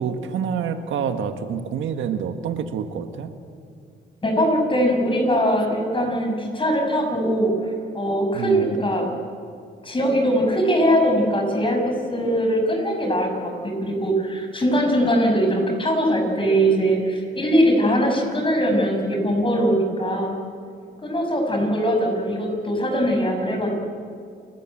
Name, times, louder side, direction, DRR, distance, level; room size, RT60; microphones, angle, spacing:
voice 1, 0.0-3.3 8.3-8.7, right 7 dB, 80° right, 7 dB, 1.6 m, -27 dB
voice 2, 4.2-7.5 7.9-9.1 9.8-20.3 21.0-23.7, equal, 25° left, 3 dB, 6.7 m, -21 dB
28.5 x 13.5 x 9.1 m, 2.3 s
cardioid pair, 90°, 20 cm